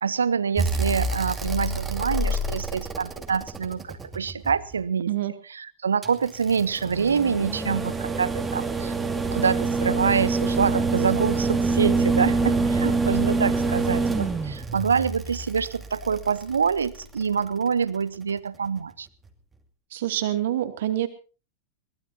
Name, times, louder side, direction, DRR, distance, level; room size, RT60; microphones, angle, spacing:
voice 1, 0.0-5.1 5.5-8.9 9.3-19.1, right 6 dB, 70° right, 20 dB, 0.8 m, -26 dB
sound 1, 0.6-4.7 6.0-17.2 18.8-18.9, right 3 dB, 10° right, 2.5 m, -26 dB
voice 2, 19.9-21.1, right 12 dB, 55° right, 9 dB, 2.4 m, -26 dB
22.5 x 19.5 x 2.8 m, 0.35 s
figure-of-eight pair, 90°, 0 cm